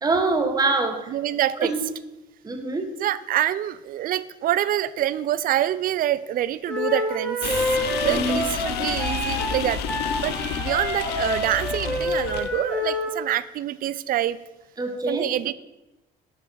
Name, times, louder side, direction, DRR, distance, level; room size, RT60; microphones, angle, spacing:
voice 1, 0.0-1.0 1.6-1.8 2.4-2.9 8.1-8.4 14.8-15.2, right 3 dB, 20° right, 5 dB, 1.4 m, -24 dB
voice 2, 1.1-1.7 3.0-7.5 8.0-9.8 10.2-14.4 15.1-15.5, right 12 dB, 60° right, 17 dB, 0.5 m, -26 dB
Wind instrument woodwind instrument, 6.6-13.1, left 1 dB, 10° left, 4.0 m, -28 dB
sound 1, 7.4-12.5, left 8 dB, 80° left, 0.8 m, -30 dB
11.0 x 5.9 x 4.7 m, 1.0 s
cardioid pair, 110°, 17 cm